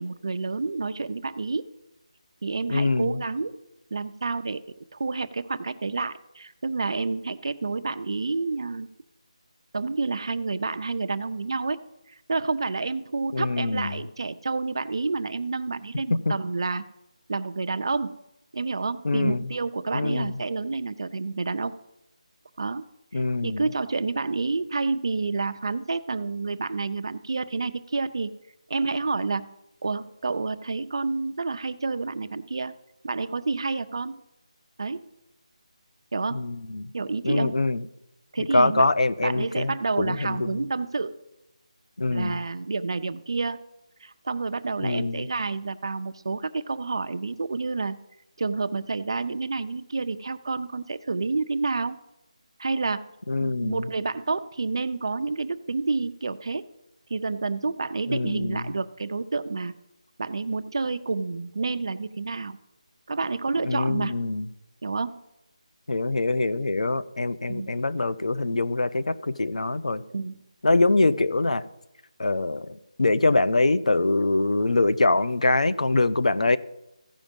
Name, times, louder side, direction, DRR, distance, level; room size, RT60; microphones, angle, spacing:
voice 1, 0.0-1.7 2.4-3.6 3.9-4.6 4.9-8.9 9.7-11.8 12.3-16.8 17.3-18.2 18.5-21.8 22.6-22.8 23.4-28.3 28.7-29.5 29.8-32.7 33.0-34.2 34.8-35.0 36.1-36.5 36.9-37.6 38.3-38.9 39.2-41.2 42.1-43.6 44.0-48.0 48.4-52.0 52.6-53.1 53.4-56.7 57.1-59.7 60.2-62.6 63.1-64.2 64.8-65.2 67.5-67.7 70.1-70.4, right 3 dB, 45° right, 11 dB, 0.5 m, -29 dB
voice 2, 2.7-3.2 13.3-14.0 16.3-16.4 19.0-19.5 19.9-20.4 23.1-23.7 36.3-36.9 37.2-37.8 38.4-40.6 42.0-42.4 44.8-45.3 53.3-53.9 58.1-58.6 63.6-64.5 65.9-70.0 70.6-71.6 72.2-76.6, left 2 dB, 85° left, 13 dB, 0.6 m, -24 dB
15.5 x 5.1 x 5.2 m, 0.88 s
figure-of-eight pair, 175°, 4 cm